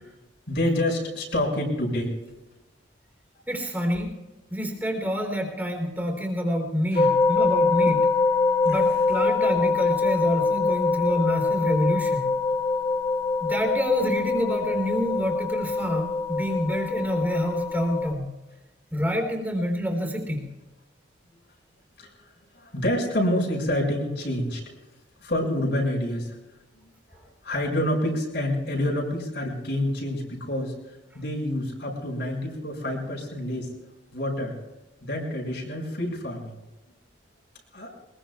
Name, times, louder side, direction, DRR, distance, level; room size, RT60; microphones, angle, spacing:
voice 1, 0.5-2.1 6.9-7.1 7.9-8.0 8.7-8.8 22.0-22.1 22.5-24.8 25.2-26.4 27.4-30.8 31.1-33.7 34.1-34.5 35.0-36.6 37.7-37.9, left 1 dB, 70° left, 0 dB, 6.1 m, -27 dB
voice 2, 3.5-4.1 4.5-8.1 8.6-12.3 13.4-18.3 18.9-20.5, equal, 10° right, 2 dB, 3.3 m, -27 dB
sound 1, 7.0-18.1, left 4 dB, 30° left, 2.2 m, -24 dB
24.0 x 21.5 x 2.4 m, 1.1 s
head